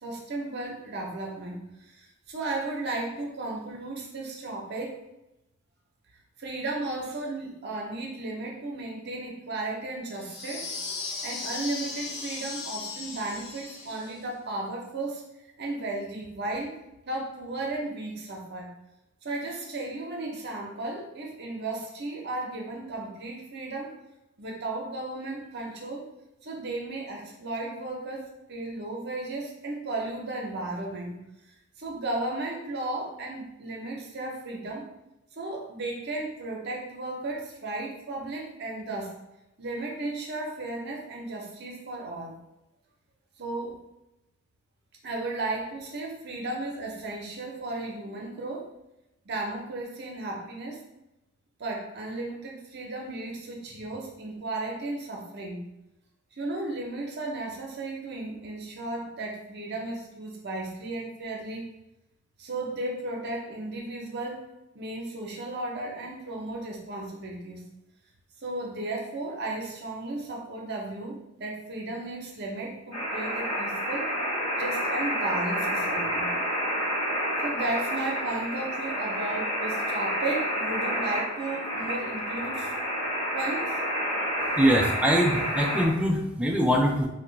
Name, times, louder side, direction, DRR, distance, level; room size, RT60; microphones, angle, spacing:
voice 1, 0.0-5.0 6.4-10.7 11.2-15.2 15.6-16.8 17.1-18.7 19.2-24.0 24.4-26.1 26.4-31.2 31.8-34.8 35.4-39.1 39.6-42.4 43.4-43.8 45.0-48.7 49.2-50.8 51.6-55.6 56.3-61.7 62.4-64.4 64.7-67.6 68.4-74.1 74.6-76.3 77.4-82.7 83.3-83.8 84.1-84.3, right 2 dB, 50° right, -1 dB, 0.7 m, -34 dB
sound 1, 10.2-14.2, left 4 dB, 50° left, 0.5 m, -37 dB
sound 2, 72.9-85.9, equal, 30° left, 1.1 m, -29 dB
voice 2, 84.6-87.1, equal, 5° right, 0 dB, 0.3 m, -23 dB
2.9 x 2.2 x 3.8 m, 0.92 s
head